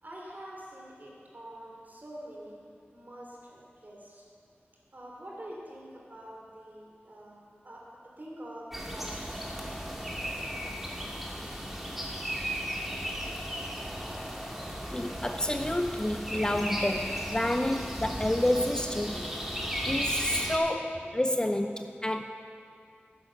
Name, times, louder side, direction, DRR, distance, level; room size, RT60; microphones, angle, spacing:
voice 1, 0.0-2.6 2.9-4.2 4.9-7.4 7.6-9.6 15.6-15.7 16.1-16.2 16.5-16.6 17.0-17.3 19.1-19.2 19.5-19.6 20.9-21.2, right 1 dB, 45° right, -3 dB, 3.2 m, -46 dB
sound 1, 8.7-20.6, equal, 5° right, 1.9 m, -35 dB
voice 2, 14.9-19.2 19.8-22.2, left 1 dB, 20° left, 6 dB, 0.5 m, -29 dB
9.8 x 9.8 x 6.7 m, 2.3 s
wide cardioid pair, 65°, 4 cm